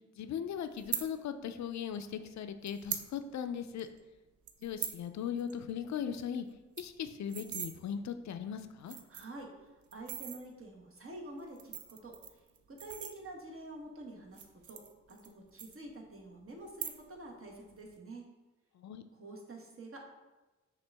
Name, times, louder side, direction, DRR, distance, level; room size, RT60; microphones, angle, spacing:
voice 1, 0.2-3.9 4.6-6.5 6.8-9.0 18.7-19.0, left 8 dB, 70° left, 9 dB, 0.4 m, -38 dB
sound 1, 0.8-1.1 2.0-2.1 2.6-3.1 3.4-3.5 3.8-4.0 4.5-5.0 5.4-5.5 5.8-5.9 6.2-6.3 6.6-7.7 8.4-8.5 8.8-9.4 9.9-10.4 11.4-13.6 14.2-15.3 15.6-16.2 16.6-17.2 17.5-17.9, right 9 dB, 80° right, 0.5 m, -41 dB
voice 2, 9.1-9.5 9.9-12.4 12.7-14.8 15.1-18.3 19.1-20.0, right 2 dB, 50° right, 0 dB, 1.1 m, -48 dB
5.9 x 2.4 x 3.4 m, 1.1 s
cardioid pair, 45°, 29 cm